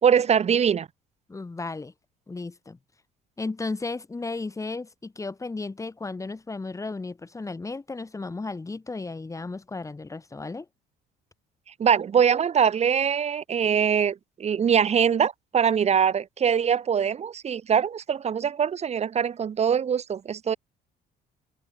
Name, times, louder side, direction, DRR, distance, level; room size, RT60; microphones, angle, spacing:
voice 1, 0.0-0.9 11.8-20.6, right 7 dB, 40° right, 1.9 m, -23 dB
voice 2, 1.3-1.9 2.3-2.8 3.4-10.7, left 3 dB, 20° left, 7.0 m, -34 dB
cardioid pair, 110°, 17 cm